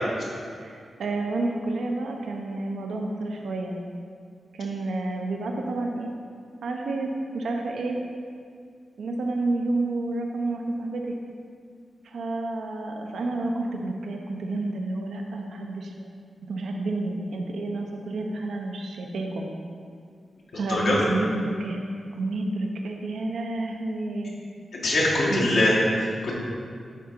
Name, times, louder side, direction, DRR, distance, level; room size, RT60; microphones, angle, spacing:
voice 1, 0.6-3.8 4.5-6.1 6.6-8.0 9.0-11.1 12.0-16.1 16.4-19.5 20.5-21.8 22.2-24.3 25.3-25.5, right 2 dB, 85° right, 1 dB, 0.8 m, -30 dB
voice 2, 24.7-26.4, left 1 dB, 85° left, -6 dB, 1.6 m, -23 dB
10.5 x 3.7 x 4.5 m, 2.2 s
cardioid pair, 80°, 0 cm